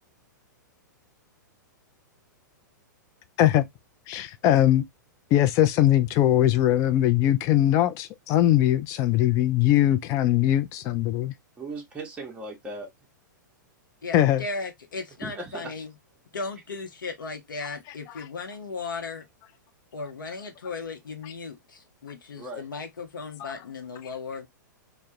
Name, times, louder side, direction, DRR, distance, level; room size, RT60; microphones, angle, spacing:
voice 1, 4.1-4.8 5.3-11.3 14.1-14.4 23.4-23.5, left 12 dB, 30° left, 0.3 m, -21 dB
voice 2, 11.6-12.9 15.2-15.7 22.3-22.7, right 2 dB, 10° right, 0.7 m, -37 dB
voice 3, 14.0-15.9 16.3-19.2 19.9-24.5, left 4 dB, 85° left, 0.7 m, -36 dB
2.2 x 2.1 x 2.7 m
hypercardioid pair, 115°, 10 cm